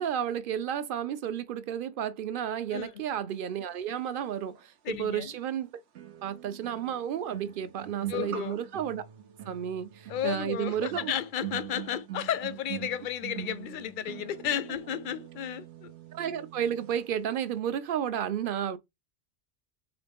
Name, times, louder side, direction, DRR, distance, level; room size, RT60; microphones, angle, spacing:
voice 1, 0.0-5.7 6.2-9.0 9.5-11.1 16.1-18.8, right 9 dB, 60° right, 0.7 m, -32 dB
sound 1, 4.6-4.7 5.9-17.0 17.3-17.6, right 12 dB, 85° right, 1.0 m, -43 dB
voice 2, 4.8-5.3 8.1-8.6 10.1-15.9, left 10 dB, 60° left, 0.6 m, -33 dB
4.0 x 3.7 x 3.4 m
omnidirectional pair, 1.1 m